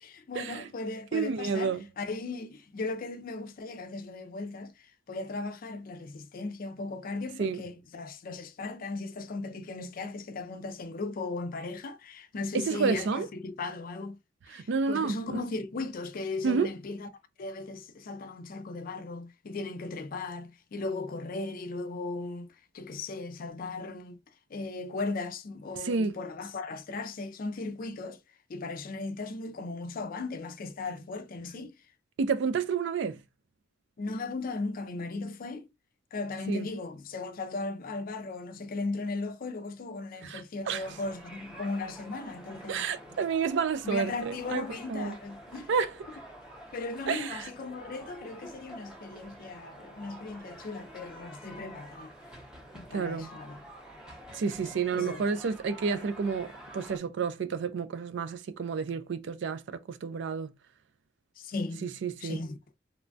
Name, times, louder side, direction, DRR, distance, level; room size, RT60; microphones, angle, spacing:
voice 1, 0.0-4.7 5.1-14.2 14.5-17.1 17.4-24.2 24.5-28.2 28.5-31.7 34.0-35.7 36.1-43.2 43.8-45.7 46.7-52.1 52.7-53.6 54.9-55.2 61.4-61.9 62.2-62.6, left 3 dB, 45° left, 0.4 m, -37 dB
voice 2, 1.1-1.9 7.4-7.6 12.5-13.3 14.5-15.4 16.4-16.7 25.8-26.2 32.2-33.2 36.5-36.7 40.2-40.8 42.7-45.2 45.7-45.9 47.1-47.5 52.9-53.3 54.3-60.5 61.8-62.4, right 5 dB, 65° right, 0.4 m, -30 dB
sound 1, 40.8-57.0, right 1 dB, 5° right, 0.7 m, -48 dB
3.1 x 2.2 x 2.5 m
head